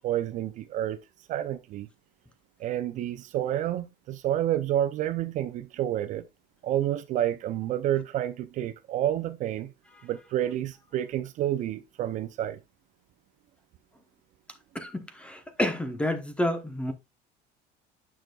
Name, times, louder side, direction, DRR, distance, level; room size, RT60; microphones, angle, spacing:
voice 1, 0.0-1.0 1.3-1.9 2.6-6.2 6.6-9.7 10.0-12.6, right 12 dB, 45° right, 0.5 m, -29 dB
voice 2, 14.7-16.9, left 1 dB, 5° left, 0.9 m, -29 dB
9.2 x 6.1 x 2.3 m
cardioid pair, 165°, 18 cm